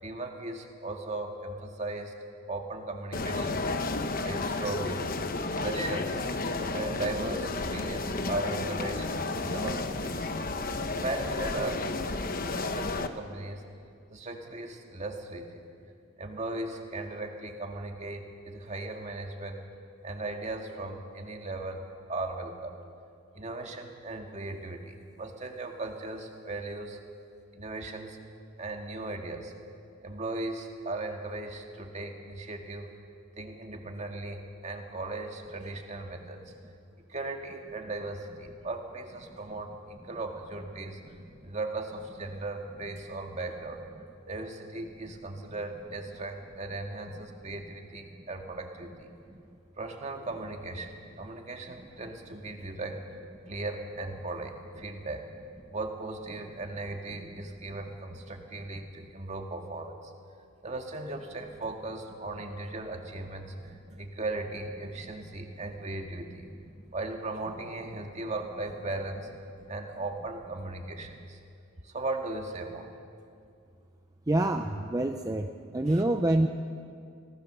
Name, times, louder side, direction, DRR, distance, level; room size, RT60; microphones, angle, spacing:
voice 1, 0.0-2.1 2.5-3.7 4.2-5.1 5.6-6.3 6.7-9.1 9.4-10.3 11.0-13.6 14.1-15.6 16.2-19.6 20.0-21.8 22.1-22.8 23.3-27.0 27.5-28.2 28.6-29.5 30.0-32.9 33.4-36.4 37.1-41.0 41.4-43.8 44.3-49.1 49.8-53.0 53.5-55.2 55.7-60.1 60.6-63.7 64.0-66.5 66.9-69.3 69.7-71.4 71.8-72.9 75.8-76.0, right 2 dB, 30° right, 3 dB, 2.0 m, -37 dB
sound 1, 3.1-13.1, left 3 dB, 40° left, 1.0 m, -32 dB
voice 2, 74.3-75.5 75.7-76.5, right 1 dB, 15° right, 5 dB, 0.6 m, -26 dB
26.0 x 18.0 x 6.8 m, 2.4 s
head